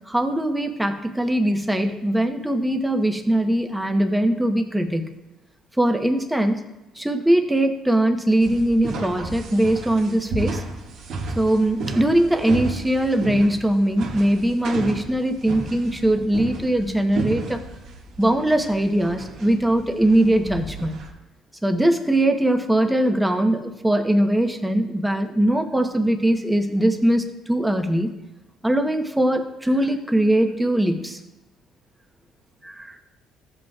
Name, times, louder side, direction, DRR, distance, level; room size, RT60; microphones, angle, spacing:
voice 1, 0.1-5.0 5.8-6.6 7.0-10.6 11.4-17.6 18.2-21.0 21.6-28.1 28.6-31.2 32.6-33.0, right 1 dB, 5° right, 4 dB, 0.9 m, -21 dB
sound 1, 8.4-21.1, right 3 dB, 70° right, 1.8 m, -33 dB
14.5 x 7.8 x 2.4 m, 0.98 s
cardioid pair, 115°, 0 cm